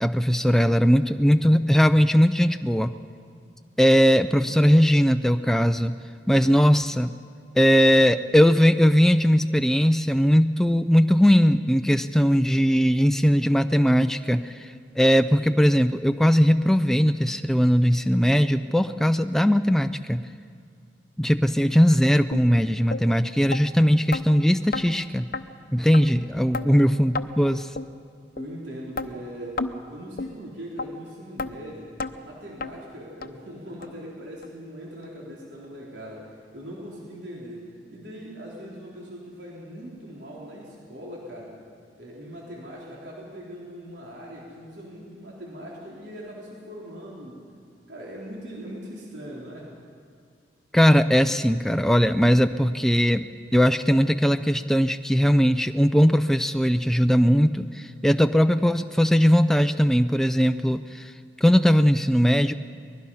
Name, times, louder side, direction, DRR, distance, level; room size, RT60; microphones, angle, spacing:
voice 1, 0.0-2.9 3.8-6.0 6.3-7.1 7.6-20.3 21.2-25.3 25.7-27.7 50.7-53.2 53.5-61.1 61.4-62.5, equal, 5° left, 8 dB, 0.4 m, -19 dB
sound 1, 22.3-22.4 22.9-23.0 23.5-23.6 24.1-24.2 24.7-24.9 25.3-25.4 25.9-26.0 26.5-26.7 27.1-27.3 27.8-27.9 28.4-28.5 29.0-29.1 29.6-29.7 30.2-30.3 30.8-30.9 31.4-31.5 32.0-32.1 32.6-32.7 33.2-33.3 33.8-33.9 34.4-34.5 35.0-35.1, left 3 dB, 55° left, 0.8 m, -30 dB
voice 2, 28.4-31.9 32.2-41.5 42.0-47.4 47.9-49.7, equal, 80° right, -4 dB, 3.9 m, -40 dB
23.5 x 20.5 x 5.6 m, 2.2 s
head